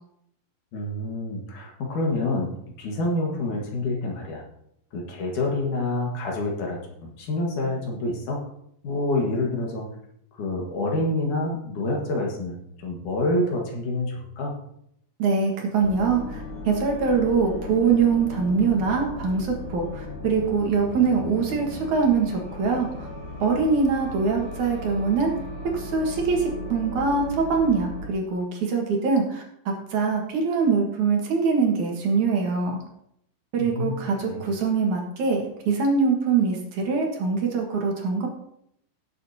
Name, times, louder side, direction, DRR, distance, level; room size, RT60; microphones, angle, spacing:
voice 1, 0.7-4.4 4.9-8.4 8.8-9.9 10.3-12.6 12.8-14.5 33.6-34.4, left 2 dB, 55° left, -1 dB, 2.6 m, -27 dB
voice 2, 15.2-23.1 23.4-25.3 25.7-32.8 33.5-38.3, right 5 dB, 55° right, 0 dB, 2.4 m, -23 dB
sound 1, 15.8-28.1, left 2 dB, 75° left, 4.1 m, -36 dB
17.5 x 7.4 x 2.8 m, 0.74 s
omnidirectional pair, 4.9 m